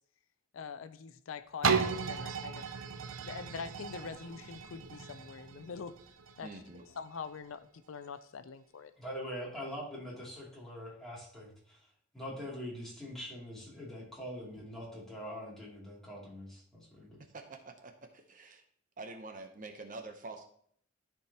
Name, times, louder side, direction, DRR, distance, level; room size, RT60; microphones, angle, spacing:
voice 1, 0.5-2.7 3.2-6.0 6.4-6.5 7.0-8.9, left 5 dB, 85° left, 12 dB, 0.5 m, -44 dB
sound 1, 1.6-7.4 7.9-8.0, right 5 dB, 75° right, 0.6 m, -35 dB
voice 2, 6.4-6.9 17.3-18.6 19.0-20.4, right 3 dB, 40° right, 5 dB, 0.8 m, -46 dB
voice 3, 9.0-17.2, equal, ahead, -6 dB, 2.7 m, -43 dB
13.5 x 4.6 x 2.9 m, 0.63 s
head